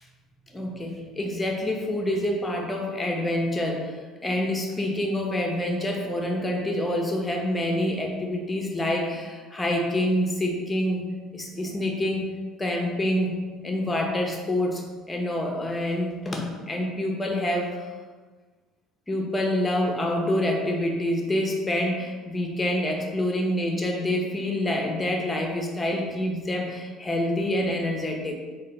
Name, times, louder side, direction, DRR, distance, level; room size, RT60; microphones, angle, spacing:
voice 1, 0.5-4.0 4.2-12.3 12.6-17.8 19.1-28.4, left 1 dB, 15° left, 1 dB, 0.7 m, -27 dB
3.7 x 2.4 x 3.4 m, 1.4 s
hypercardioid pair, 60°, 0 cm